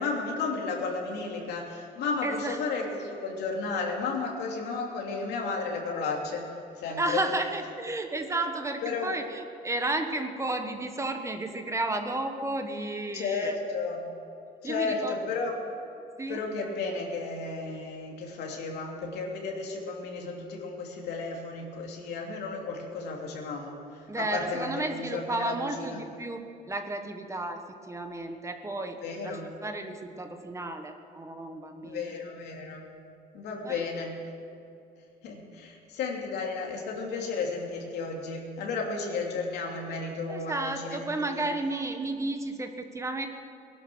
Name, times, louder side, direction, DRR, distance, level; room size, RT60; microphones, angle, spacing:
voice 1, 0.0-7.2 8.8-9.1 13.1-14.1 14.6-15.6 16.3-26.0 29.0-29.5 31.8-32.9 33.3-34.2 35.2-41.5, left 4 dB, 80° left, 0 dB, 3.0 m, -33 dB
voice 2, 2.2-2.6 7.0-13.5 14.6-15.2 16.2-16.4 24.1-32.0 33.6-33.9 40.3-43.3, right 2 dB, 15° right, 5 dB, 1.4 m, -32 dB
19.5 x 11.5 x 6.3 m, 2.6 s
cardioid pair, 110°, 17 cm